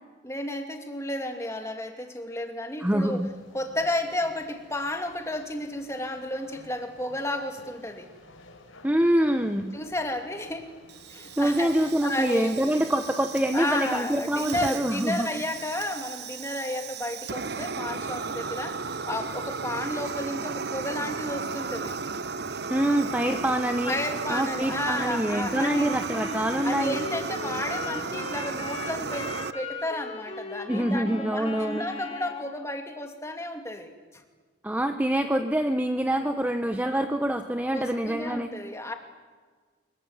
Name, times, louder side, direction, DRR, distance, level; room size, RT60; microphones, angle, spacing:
voice 1, 0.2-3.2 3.5-8.1 9.7-10.7 11.1-12.9 13.5-22.0 23.8-25.9 26.6-33.9 37.7-38.9, left 1 dB, 15° left, 4 dB, 2.6 m, -32 dB
sound 1, 2.8-16.0, left 2 dB, 90° left, 4.5 m, -52 dB
voice 2, 2.8-3.3 8.8-9.8 11.4-15.3 22.7-24.0 24.3-27.0 30.7-31.9 34.6-38.5, right 1 dB, 10° right, 7 dB, 0.8 m, -25 dB
Fire, 10.9-29.5, right 4 dB, 55° right, 0.8 m, -35 dB
Wind instrument woodwind instrument, 25.5-32.5, left 4 dB, 30° left, 3.6 m, -38 dB
25.0 x 22.5 x 9.7 m, 1.5 s
head